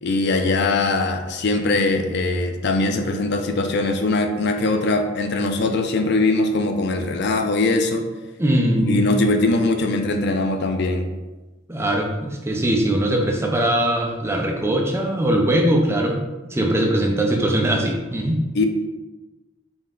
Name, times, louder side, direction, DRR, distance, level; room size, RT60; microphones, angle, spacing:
voice 1, 0.0-8.1 8.8-11.1 18.5-18.7, left 2 dB, 60° left, 5 dB, 0.4 m, -21 dB
voice 2, 8.4-9.0 11.7-18.4, right 1 dB, 15° right, 1 dB, 0.5 m, -21 dB
5.3 x 2.2 x 3.6 m, 1.1 s
head